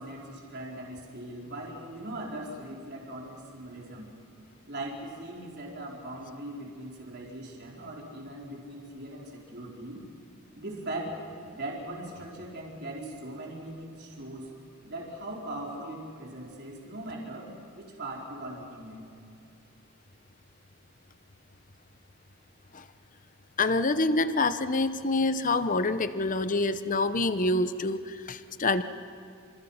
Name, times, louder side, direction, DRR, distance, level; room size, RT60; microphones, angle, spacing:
voice 1, 0.0-4.1 4.7-10.0 10.6-11.2 11.5-14.5 14.8-19.0, right 1 dB, 50° right, -2 dB, 4.6 m, -40 dB
voice 2, 23.6-28.8, left 2 dB, 35° left, 11 dB, 0.9 m, -26 dB
30.0 x 27.5 x 5.8 m, 2.5 s
head